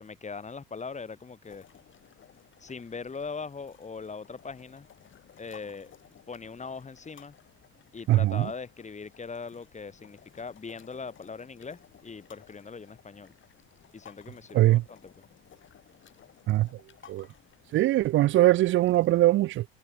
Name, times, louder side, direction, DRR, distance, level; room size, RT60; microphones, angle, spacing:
voice 1, 0.0-1.6 2.6-4.9 5.4-5.9 6.3-7.3 7.9-13.3 13.9-15.2, left 5 dB, 25° left, 4.3 m, -40 dB
sound 1, 1.4-19.1, left 9 dB, 40° left, 6.9 m, -57 dB
voice 2, 8.1-8.5 14.5-14.8 16.5-16.7 17.1-17.3 17.7-19.6, right 15 dB, 40° right, 0.5 m, -21 dB
hypercardioid pair, 75°, 30 cm